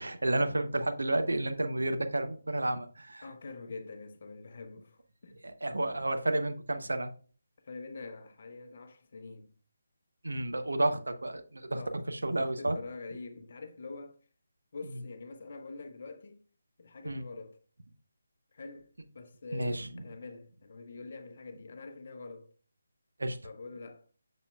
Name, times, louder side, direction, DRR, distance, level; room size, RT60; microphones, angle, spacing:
voice 1, 0.0-3.2 5.4-7.1 10.2-11.8 12.1-12.8 14.9-15.0 17.0-17.2 19.5-19.9 23.2-23.4, right 1 dB, 65° right, 0.7 m, -31 dB
voice 2, 3.2-5.3 7.6-9.5 11.7-12.0 12.3-14.2 14.7-16.4 16.8-17.6 18.5-22.5 23.4-24.1, left 3 dB, 45° left, 0.8 m, -45 dB
6.9 x 6.2 x 2.3 m
figure-of-eight pair, 150°, 0 cm